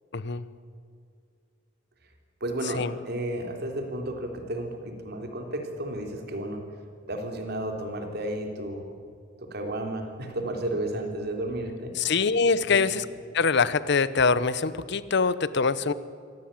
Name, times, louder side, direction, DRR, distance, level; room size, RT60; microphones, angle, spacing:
voice 1, 0.1-0.4 2.7-2.9 12.0-13.1 13.3-15.9, left 4 dB, 65° left, 16 dB, 0.9 m, -24 dB
voice 2, 2.4-6.6 7.1-8.9 9.4-11.9 12.7-12.8, right 1 dB, 55° right, 4 dB, 3.5 m, -32 dB
25.5 x 17.0 x 9.0 m, 2.2 s
head